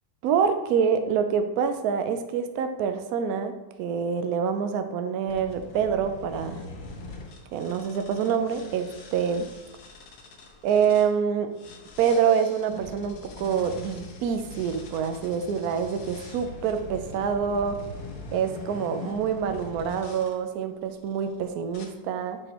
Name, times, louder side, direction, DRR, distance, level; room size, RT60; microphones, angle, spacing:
voice 1, 0.2-6.6 7.5-9.5 10.6-11.5 12.0-17.8 18.3-22.4, right 7 dB, 70° right, 8 dB, 0.9 m, -26 dB
sound 1, 5.3-11.1 11.6-20.3 21.0-21.3 21.7-21.9, left 3 dB, 75° left, 1.6 m, -43 dB
7.7 x 4.9 x 3.0 m, 1.1 s
omnidirectional pair, 2.1 m